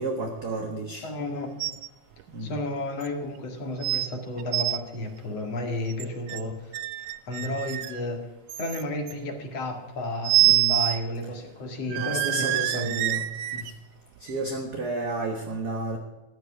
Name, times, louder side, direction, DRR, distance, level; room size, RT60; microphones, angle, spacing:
voice 1, 0.0-1.1 2.3-2.6 7.4-7.5 10.4-10.9 11.9-13.3 13.5-13.7 14.2-16.0, right 2 dB, 45° right, 3 dB, 1.3 m, -32 dB
voice 2, 1.0-1.5 2.4-6.7 7.0-8.2 8.6-13.0, left 1 dB, 60° left, 4 dB, 2.9 m, -32 dB
sound 1, 1.6-1.9 2.2-2.3 3.0-3.1 3.8-4.1 4.4-4.8 5.9-6.4 6.7-8.0 8.5-9.1 10.2-11.0 11.3-11.4 11.9-13.7 14.3-14.4, right 16 dB, 75° right, 1.6 m, -26 dB
15.0 x 10.5 x 6.0 m, 1.1 s
omnidirectional pair, 3.3 m